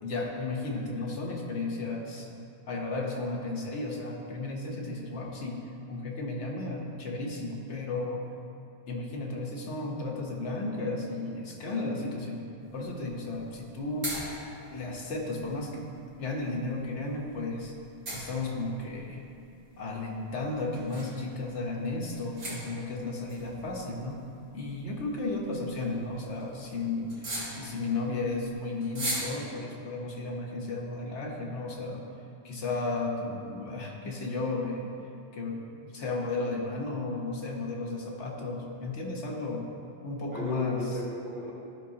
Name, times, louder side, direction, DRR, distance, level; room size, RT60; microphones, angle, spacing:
voice 1, 0.0-2.3 2.7-8.2 8.9-12.4 12.7-14.1 14.4-15.9 16.2-17.7 18.1-19.2 19.8-24.2 24.5-27.2 27.6-32.1 32.4-34.9 35.3-39.7 40.0-41.0, left 2 dB, 80° left, -1 dB, 1.3 m, -34 dB
voice 2, 11.6-12.1 40.3-41.5, left 1 dB, 50° right, -4 dB, 1.4 m, -36 dB
sound 1, 12.6-29.3, right 1 dB, 70° right, 1.7 m, -42 dB
12.5 x 5.4 x 2.8 m, 2.7 s
omnidirectional pair, 1.2 m